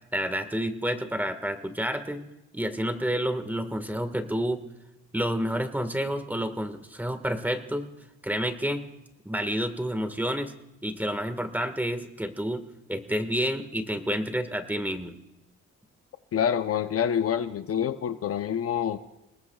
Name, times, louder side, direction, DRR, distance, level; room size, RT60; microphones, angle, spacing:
voice 1, 0.1-2.2 2.5-4.6 5.1-7.9 8.2-8.8 9.2-10.5 10.8-12.6 12.9-15.2, equal, 5° right, 8 dB, 1.6 m, -29 dB
voice 2, 16.3-19.0, left 8 dB, 50° left, 10 dB, 0.7 m, -27 dB
29.5 x 19.5 x 2.4 m, 0.91 s
cardioid pair, 90°, 30 cm